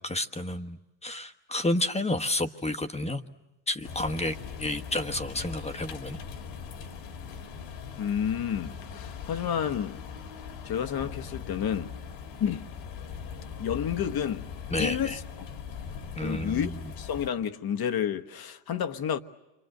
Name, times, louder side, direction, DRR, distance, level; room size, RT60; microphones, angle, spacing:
voice 1, 0.0-3.2 3.7-6.2 14.7-15.2 16.1-16.8, left 1 dB, 15° left, 1.3 m, -31 dB
sound 1, 3.8-17.3, left 6 dB, 70° left, 2.3 m, -40 dB
voice 2, 8.0-10.0 10.6-11.9 12.4-12.6 13.6-14.5 14.8-15.2 16.2-16.7 17.0-19.2, left 8 dB, 50° left, 1.4 m, -30 dB
29.0 x 25.5 x 7.9 m
supercardioid pair, 80°, 47 cm